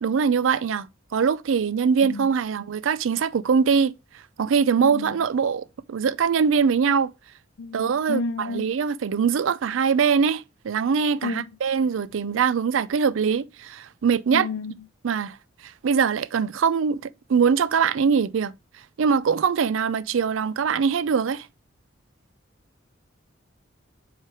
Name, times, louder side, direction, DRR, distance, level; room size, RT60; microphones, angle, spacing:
voice 1, 0.0-0.9 1.1-3.9 4.4-7.1 7.7-14.5 15.0-15.4 15.6-18.5 19.0-21.5, right 6 dB, 70° right, 0.4 m, -22 dB
voice 2, 2.0-2.3 4.8-5.2 7.6-8.7 11.2-11.4 14.3-14.7, left 3 dB, 65° left, 0.4 m, -31 dB
7.6 x 3.3 x 4.4 m
head